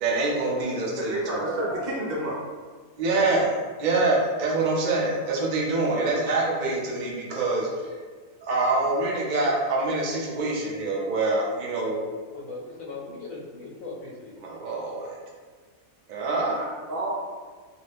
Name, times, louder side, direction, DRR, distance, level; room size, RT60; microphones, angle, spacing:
voice 1, 0.0-1.8 3.0-7.9 8.4-12.1 14.4-15.2 16.1-16.6, right 2 dB, 70° right, -3 dB, 0.4 m, -25 dB
voice 2, 1.0-2.4 16.5-17.1, right 1 dB, 50° right, -6 dB, 0.8 m, -30 dB
voice 3, 12.3-14.4, left 3 dB, 65° left, -4 dB, 1.1 m, -39 dB
2.7 x 2.4 x 3.3 m, 1.5 s
omnidirectional pair, 1.6 m